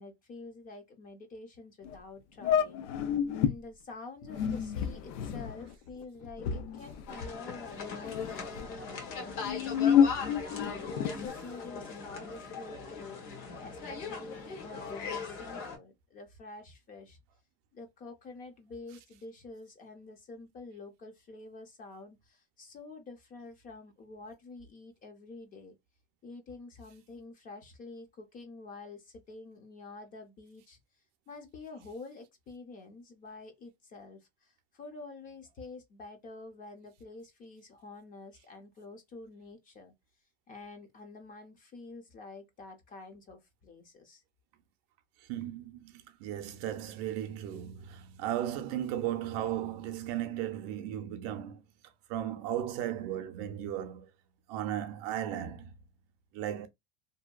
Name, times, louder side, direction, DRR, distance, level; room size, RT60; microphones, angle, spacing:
voice 1, 0.0-2.9 3.4-13.2 13.6-17.2 17.7-25.8 26.2-30.8 31.3-39.9 40.5-44.2, left 3 dB, 25° left, 0.5 m, -48 dB
sound 1, 1.8-2.0 2.4-3.6 4.2-7.7 8.0-8.7 9.3-11.3, left 8 dB, 80° left, 0.6 m, -29 dB
sound 2, 7.1-15.8, left 5 dB, 55° left, 1.1 m, -40 dB
voice 2, 45.2-51.6 52.1-54.1 54.5-55.7 56.3-56.7, right 11 dB, 50° right, 0.5 m, -36 dB
2.7 x 2.1 x 2.3 m
supercardioid pair, 155°, 35 cm